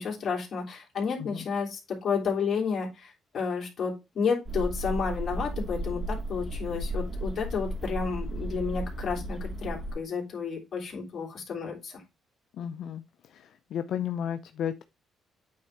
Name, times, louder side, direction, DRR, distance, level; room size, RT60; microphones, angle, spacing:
voice 1, 0.0-12.0, left 5 dB, 50° left, 3.2 m, -31 dB
sound 1, 4.5-9.9, right 1 dB, 30° right, 2.0 m, -34 dB
voice 2, 12.6-13.0 13.3-13.4 13.7-14.8, left 9 dB, 75° left, 0.5 m, -33 dB
8.6 x 3.7 x 4.5 m
cardioid pair, 90°, 0 cm